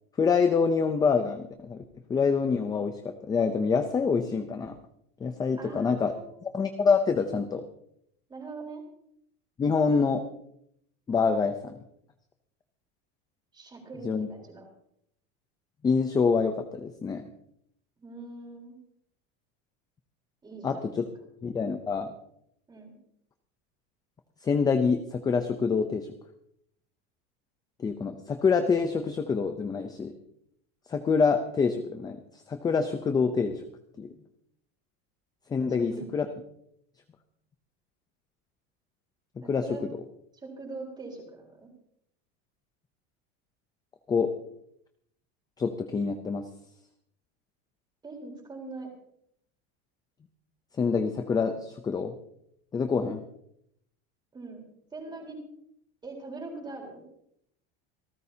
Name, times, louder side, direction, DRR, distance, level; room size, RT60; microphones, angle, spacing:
voice 1, 0.2-1.8 2.1-4.8 5.2-6.1 6.4-7.6 9.6-10.2 11.1-11.7 14.0-14.3 15.8-17.2 20.6-21.0 21.4-22.1 24.4-26.1 27.8-30.1 30.9-32.2 32.5-33.6 34.0-34.1 35.5-36.3 39.5-39.6 44.1-44.3 45.6-46.4 50.8-52.1 52.7-53.2, left 5 dB, 10° left, 7 dB, 0.5 m, -26 dB
voice 2, 5.6-6.3 8.3-8.8 13.5-14.7 18.0-18.8 20.4-20.9 22.7-22.9 35.6-36.1 39.4-39.8 40.4-41.7 48.0-48.9 54.3-54.7 54.9-55.4 56.0-57.0, right 3 dB, 15° right, 1 dB, 3.9 m, -42 dB
27.0 x 14.0 x 2.8 m, 0.73 s
supercardioid pair, 165°, 33 cm